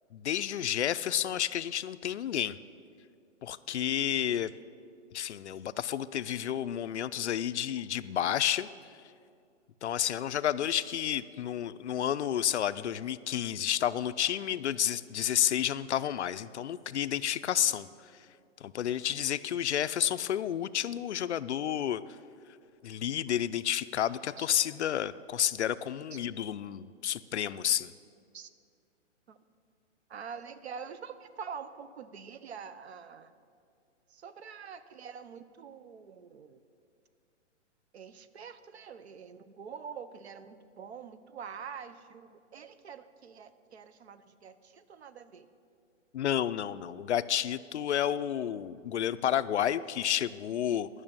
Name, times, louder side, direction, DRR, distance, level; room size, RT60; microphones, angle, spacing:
voice 1, 0.1-2.6 3.4-4.5 5.1-8.7 9.8-18.1 18.6-22.0 22.8-27.9 46.1-50.9, left 10 dB, 65° left, 15 dB, 0.5 m, -30 dB
voice 2, 30.1-33.3 34.1-36.6 37.9-45.5, right 6 dB, 60° right, 13 dB, 0.7 m, -45 dB
11.0 x 6.6 x 8.8 m, 2.3 s
hypercardioid pair, 170°, 37 cm